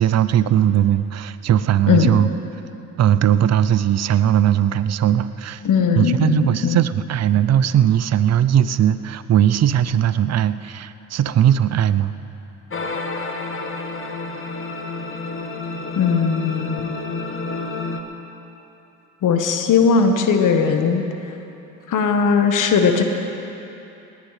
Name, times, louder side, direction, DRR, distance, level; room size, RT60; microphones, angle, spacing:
voice 1, 0.0-2.3 3.0-5.6 6.0-12.1, right 10 dB, 45° right, 14 dB, 0.7 m, -18 dB
voice 2, 5.6-6.8 15.9-16.9 19.2-21.0 21.9-23.0, left 5 dB, 60° left, 5 dB, 1.4 m, -18 dB
sound 1, 12.7-18.0, left 3 dB, 35° left, 1.6 m, -29 dB
19.5 x 18.0 x 3.3 m, 2.9 s
hypercardioid pair, 60°, 35 cm